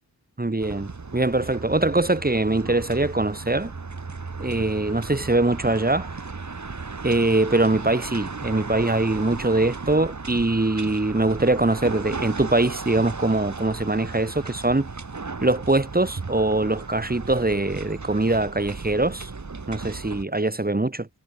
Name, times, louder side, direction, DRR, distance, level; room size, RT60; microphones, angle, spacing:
voice 1, 0.4-3.7 4.4-6.1 7.0-14.9 15.4-19.3 19.7-21.1, right 2 dB, 20° right, 3.2 m, -23 dB
sound 1, 0.6-20.2, right 4 dB, 45° right, 4.6 m, -35 dB
wide cardioid pair, 90°, 40 cm